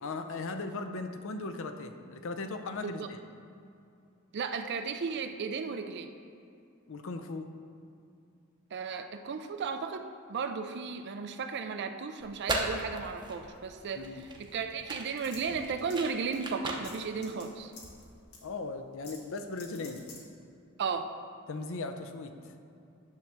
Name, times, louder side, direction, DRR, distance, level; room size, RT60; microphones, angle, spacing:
voice 1, 0.0-3.2 6.9-7.5 14.0-14.3 18.4-20.1 21.5-22.5, left 3 dB, 65° left, 7 dB, 0.6 m, -38 dB
voice 2, 4.3-6.1 8.7-14.0 14.4-17.7 20.8-21.1, right 5 dB, 55° right, 7 dB, 0.4 m, -35 dB
sound 1, 12.2-18.2, right 2 dB, 20° right, 0.7 m, -38 dB
Metal button clinking, 15.2-16.1 16.3-16.4 16.8-17.4 17.7-18.0 18.3-18.4 19.0-20.2, left 4 dB, 85° left, 1.5 m, -49 dB
9.6 x 3.4 x 6.4 m, 2.6 s
head